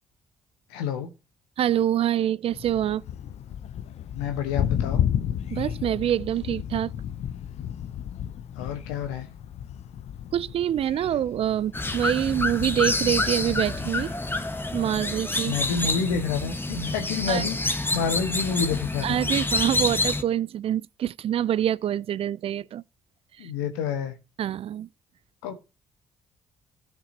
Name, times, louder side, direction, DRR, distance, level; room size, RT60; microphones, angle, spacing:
voice 1, 0.7-1.1 4.1-5.0 8.6-9.3 15.4-17.6 17.9-19.2 23.4-24.2 25.4-25.5, left 6 dB, 85° left, 1.2 m, -28 dB
voice 2, 1.6-3.0 5.5-6.9 10.3-14.1 14.7-15.5 17.3-17.4 19.0-22.8 23.4-23.5 24.4-24.9, right 11 dB, 50° right, 0.4 m, -26 dB
Thunder, 2.5-14.2, left 10 dB, 65° left, 0.6 m, -33 dB
sound 1, 11.7-20.2, left 2 dB, 15° left, 1.2 m, -28 dB
17.0 x 6.0 x 2.7 m
hypercardioid pair, 45°, 12 cm